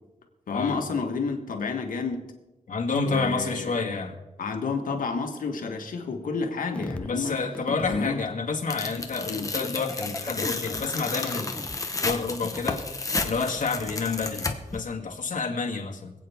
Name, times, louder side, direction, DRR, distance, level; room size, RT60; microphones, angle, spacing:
voice 1, 0.5-2.3 3.0-3.7 4.4-7.4 7.9-8.2 9.3-9.5, left 4 dB, 85° left, 4 dB, 1.7 m, -30 dB
voice 2, 2.7-4.1 7.0-11.5 12.0-12.8 13.2-16.1, left 4 dB, 70° left, 1 dB, 1.9 m, -29 dB
sound 1, 6.7-8.3 9.2-13.0 13.8-14.0, left 1 dB, 10° left, 0.4 m, -39 dB
Tearing, 8.7-14.8, left 3 dB, 25° left, 1.0 m, -32 dB
26.0 x 8.7 x 3.6 m, 1.1 s
wide cardioid pair, 175°, 14 cm